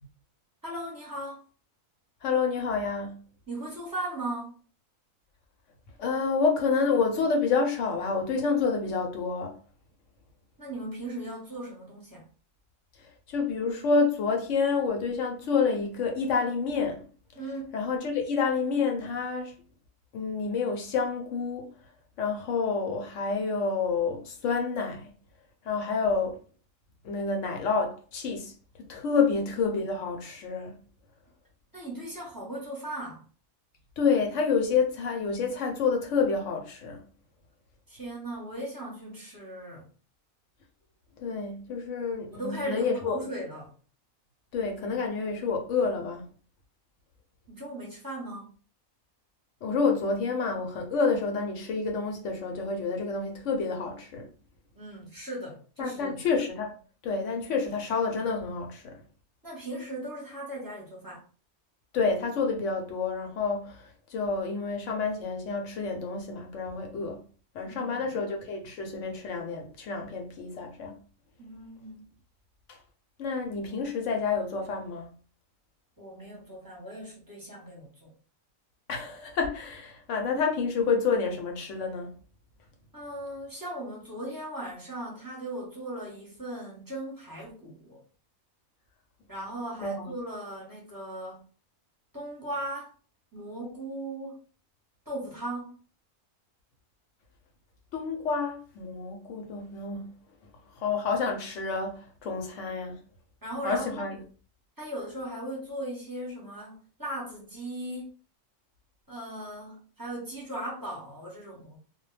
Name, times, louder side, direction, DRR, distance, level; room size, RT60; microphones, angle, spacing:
voice 1, 0.6-1.4 3.5-4.6 10.6-12.3 17.3-17.7 29.2-29.3 31.7-33.2 37.9-39.9 42.3-43.7 47.5-48.5 54.7-56.3 59.4-61.2 67.6-68.2 71.4-72.1 76.0-78.1 82.9-88.0 89.3-91.4 92.1-92.9 93.3-94.4 95.1-95.8 103.4-104.2 104.8-108.1 109.1-111.8, right 1 dB, 20° right, 0.7 m, -38 dB
voice 2, 2.2-3.2 6.0-9.5 13.0-17.0 17.7-19.5 20.1-21.7 22.2-25.1 25.6-26.4 27.0-28.5 28.9-30.8 34.0-37.0 41.2-43.2 44.5-46.2 49.6-54.3 55.8-56.7 57.0-59.0 61.9-67.2 67.5-71.0 72.7-72.8 73.2-75.1 78.9-82.1 89.8-90.1 97.9-100.1 100.8-103.0 103.6-104.2, left 4 dB, 70° left, 0.9 m, -28 dB
2.2 x 2.1 x 3.1 m
omnidirectional pair, 1.4 m